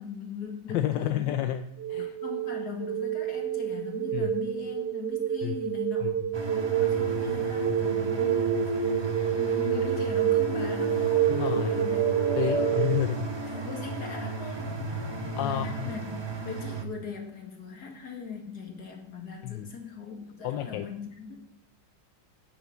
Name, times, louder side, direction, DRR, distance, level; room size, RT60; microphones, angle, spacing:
voice 1, 0.0-1.4 2.2-6.3 6.7-8.9 9.4-12.8 13.5-14.8 15.4-21.4, left 5 dB, 60° left, 2 dB, 2.5 m, -40 dB
voice 2, 0.7-1.6 1.9-2.2 4.1-4.3 5.4-5.6 6.0-6.1 11.3-11.8 12.4-13.6 15.4-15.9 19.4-19.7 20.4-20.9, left 12 dB, 85° left, 8 dB, 1.3 m, -30 dB
sound 1, 1.8-13.0, right 10 dB, 45° right, 1.1 m, -28 dB
sound 2, 6.3-16.8, right 2 dB, 20° right, 0.7 m, -33 dB
11.5 x 7.1 x 6.0 m, 0.77 s
omnidirectional pair, 1.9 m